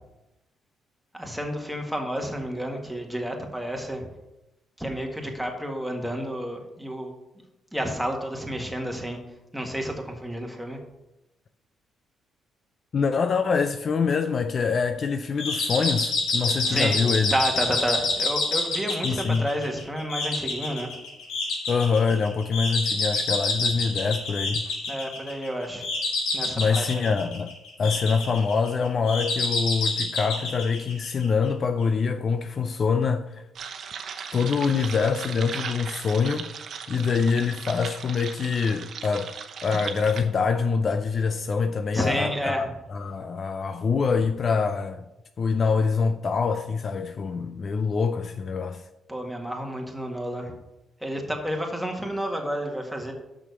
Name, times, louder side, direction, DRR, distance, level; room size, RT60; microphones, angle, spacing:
voice 1, 1.1-4.1 4.8-7.1 7.7-9.2 9.5-10.8 16.6-17.0 17.3-20.9 24.9-25.9 26.3-27.1 41.9-42.7 49.1-50.5 51.0-53.1, equal, ahead, 1.8 m, -30 dB
voice 2, 12.9-17.3 19.0-19.5 21.7-24.6 26.6-27.5 27.8-33.4 34.3-36.5 36.9-39.4 39.6-45.0 45.4-48.8, left 5 dB, 45° left, 0.4 m, -25 dB
sound 1, 15.4-31.5, left 3 dB, 85° left, 2.3 m, -28 dB
sound 2, 33.6-40.2, right 6 dB, 60° right, 0.9 m, -37 dB
6.3 x 6.1 x 6.8 m
cardioid pair, 90°, 0 cm